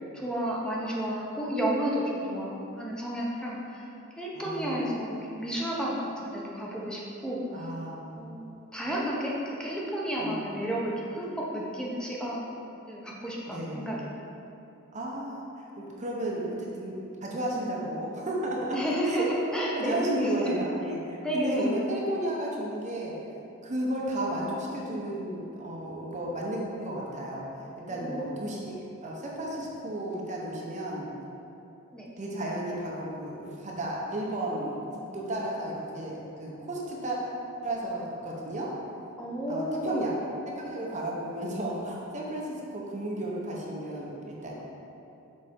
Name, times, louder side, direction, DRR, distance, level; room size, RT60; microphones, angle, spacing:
voice 1, 0.1-3.8 4.2-7.7 8.2-12.5 12.9-14.0 18.7-20.4 21.2-21.7 27.9-28.4 31.9-32.1 39.2-39.9, right 1 dB, 5° left, -5 dB, 0.9 m, -32 dB
voice 2, 4.3-5.0 7.5-8.3 10.2-10.6 13.5-14.1 14.9-18.8 19.0-19.3 19.7-23.2 23.6-28.7 29.0-31.1 32.2-37.2 37.6-38.7 39.5-40.1 40.5-44.6, right 1 dB, 35° right, -3 dB, 0.8 m, -33 dB
6.4 x 4.2 x 4.4 m, 2.8 s
head